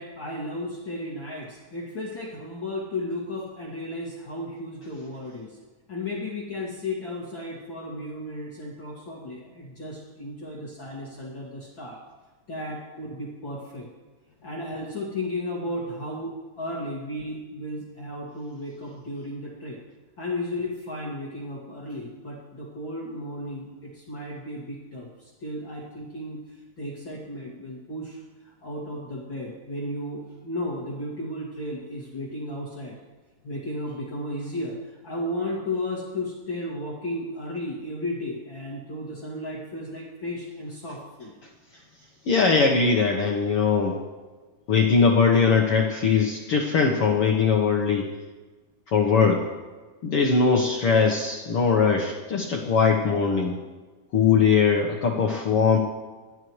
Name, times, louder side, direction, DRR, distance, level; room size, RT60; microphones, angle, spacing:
voice 1, 0.0-5.6 5.9-12.0 12.5-13.9 14.4-19.8 20.2-33.0 33.4-41.4 41.7-42.3, left 1 dB, 40° left, -5 dB, 2.6 m, -34 dB
voice 2, 42.3-43.9 44.7-48.1 48.9-49.5 50.0-53.6 54.1-55.8, left 5 dB, 60° left, 0 dB, 1.6 m, -21 dB
29.0 x 11.5 x 3.2 m, 1.3 s
omnidirectional pair, 3.9 m